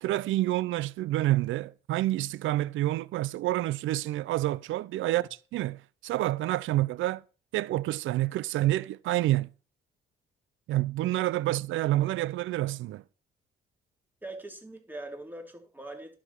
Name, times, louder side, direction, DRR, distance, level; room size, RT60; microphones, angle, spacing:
voice 1, 0.0-5.2 5.5-7.2 7.5-9.5 10.7-13.0, right 15 dB, 80° right, 0.5 m, -28 dB
voice 2, 14.2-16.2, right 1 dB, 10° right, 3.3 m, -42 dB
11.0 x 6.2 x 6.8 m
cardioid pair, 90°, 20 cm